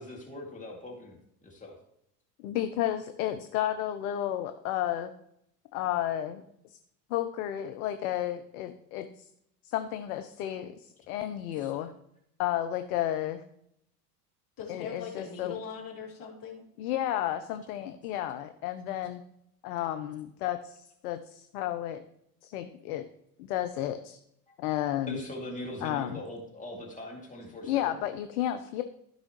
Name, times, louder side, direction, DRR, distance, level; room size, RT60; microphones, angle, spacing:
voice 1, 0.0-1.7 11.6-11.8 17.8-17.9 24.5-24.6 25.1-28.0, left 1 dB, 15° left, -1 dB, 2.6 m, -41 dB
voice 2, 2.4-5.1 5.7-6.4 7.1-9.3 9.7-11.9 12.4-13.4 14.7-15.6 16.8-19.2 19.6-22.0 22.4-23.0 23.4-24.2 24.6-25.2 25.8-26.2 27.6-28.8, left 12 dB, 60° left, 8 dB, 0.8 m, -32 dB
voice 3, 14.6-16.6, left 6 dB, 40° left, -2 dB, 2.9 m, -40 dB
15.0 x 5.5 x 3.1 m, 0.75 s
figure-of-eight pair, 70°, 49 cm